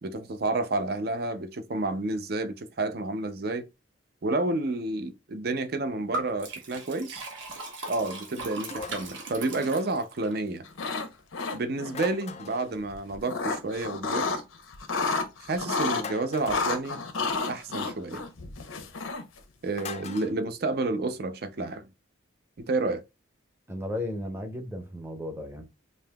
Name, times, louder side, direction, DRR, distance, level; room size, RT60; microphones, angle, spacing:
voice 1, 0.0-3.7 4.2-7.2 7.9-10.7 11.5-14.3 15.5-17.0 17.5-18.2 19.6-21.8 22.6-23.0, right 2 dB, 50° right, 0.5 m, -30 dB
Liquid, 6.1-10.3, right 2 dB, 70° right, 1.1 m, -38 dB
sound 1, 8.7-9.2 11.9-12.7 16.0-16.7 19.8-20.3, left 5 dB, 35° left, 0.4 m, -39 dB
sound 2, 10.7-11.1 11.3-11.9 12.9-14.4 14.7-16.0 16.5-19.4, left 4 dB, 90° left, 0.7 m, -30 dB
voice 2, 23.7-25.6, left 1 dB, 10° right, 0.6 m, -34 dB
5.3 x 2.8 x 2.2 m
head